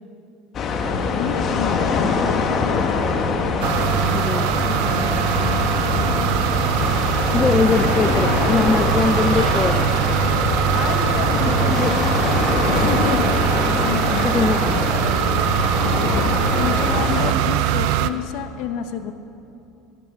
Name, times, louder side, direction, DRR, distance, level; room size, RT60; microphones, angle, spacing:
sound 1, 0.5-17.3, left 4 dB, 40° left, 1.6 m, -23 dB
voice 1, 0.8-1.9 3.8-6.4 10.2-12.0 12.7-16.3 16.6-19.1, left 7 dB, 65° left, 8 dB, 1.1 m, -30 dB
sound 2, 3.6-18.1, right 12 dB, 70° right, 0.6 m, -22 dB
voice 2, 4.1-4.8 5.4-5.5 7.3-9.9 11.4-12.1 14.2-14.7, left 4 dB, 20° left, 10 dB, 0.5 m, -22 dB
19.5 x 8.9 x 6.7 m, 2.8 s
supercardioid pair, 100°, 0 cm